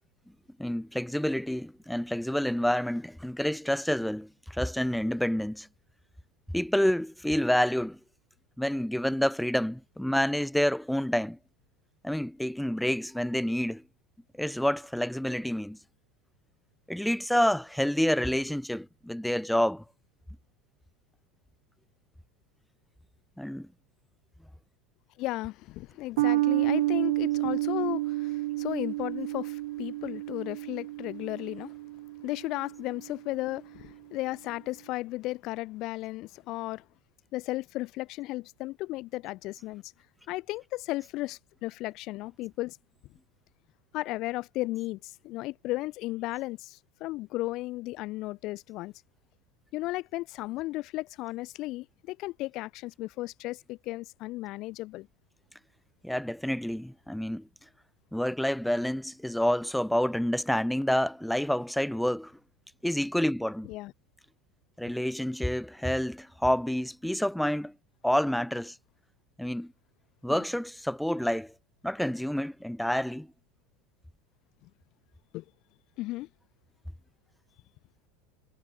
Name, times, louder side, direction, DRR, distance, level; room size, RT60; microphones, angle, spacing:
voice 1, 0.6-5.7 6.5-8.0 8.6-11.4 12.0-13.8 14.4-15.8 16.9-19.8 23.4-23.7 56.0-57.5 58.1-62.3 62.8-63.7 64.8-67.7 68.0-68.8 69.4-69.7 70.2-71.5 71.8-73.3, equal, ahead, 2.4 m, -28 dB
voice 2, 25.2-31.7 32.2-36.8 37.3-39.8 40.3-42.8 43.9-48.9 49.7-55.1 63.6-63.9 70.3-70.4 74.6-74.7 75.3-75.4 76.0-76.3, left 19 dB, 55° left, 2.6 m, -35 dB
sound 1, 26.2-32.9, right 18 dB, 75° right, 1.8 m, -30 dB
supercardioid pair, 110°, 0 cm